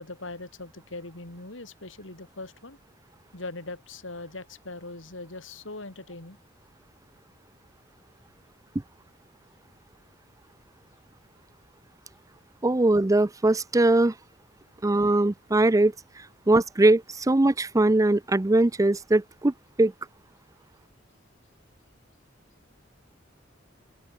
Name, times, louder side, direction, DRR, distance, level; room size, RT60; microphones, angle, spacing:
voice 1, 0.0-2.8 3.3-6.4, left 2 dB, 80° left, 3.4 m, -40 dB
voice 2, 12.6-14.1 14.8-19.9, right 2 dB, 15° right, 0.5 m, -21 dB
open air
head